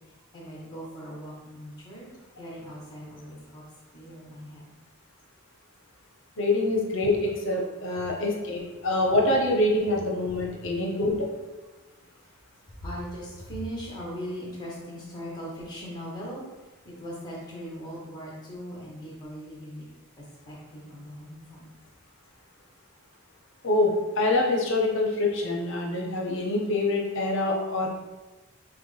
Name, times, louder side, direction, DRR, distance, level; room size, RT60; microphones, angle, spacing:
voice 1, 0.3-3.6 3.9-4.7 12.8-16.4 16.8-19.8 20.5-21.7, equal, 20° left, -4 dB, 1.1 m, -39 dB
voice 2, 6.4-11.3 23.6-27.9, left 2 dB, 60° left, 0 dB, 0.7 m, -25 dB
5.9 x 2.2 x 3.2 m, 1.2 s
head